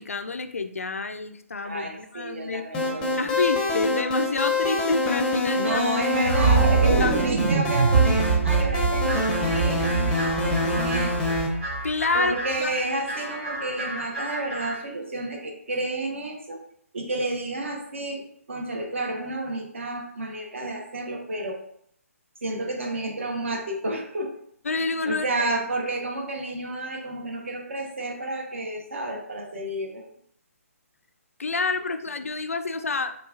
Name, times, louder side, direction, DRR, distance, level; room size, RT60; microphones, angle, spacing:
voice 1, 0.0-2.7 3.2-5.8 7.0-7.1 10.2-10.7 11.8-12.3 12.6-12.7 22.5-22.6 24.7-25.2 31.4-33.2, left 4 dB, 70° left, 9 dB, 0.3 m, -28 dB
voice 2, 1.6-3.3 5.5-11.4 12.1-16.6 16.9-21.6 22.4-24.4 25.0-30.1, right 2 dB, 55° right, 2 dB, 1.0 m, -31 dB
sound 1, 2.7-11.5, left 2 dB, 10° left, 0.6 m, -26 dB
sound 2, 6.2-12.3, right 5 dB, 35° right, 0.4 m, -23 dB
sound 3, 9.0-14.8, right 1 dB, 10° right, 1.1 m, -34 dB
6.2 x 2.4 x 2.4 m, 0.67 s
figure-of-eight pair, 135°, 8 cm